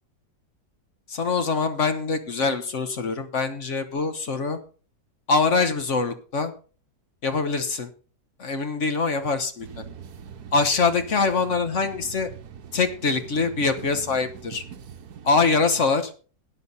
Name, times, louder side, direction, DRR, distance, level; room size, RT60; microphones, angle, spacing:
voice 1, 1.1-4.6 5.3-6.5 7.2-7.9 8.4-9.8 10.5-12.3 12.7-14.6 15.2-16.1, left 4 dB, 45° left, 9 dB, 1.4 m, -24 dB
sound 1, 9.6-15.9, right 7 dB, 65° right, 1.4 m, -42 dB
13.0 x 10.0 x 4.1 m, 0.37 s
omnidirectional pair, 1.8 m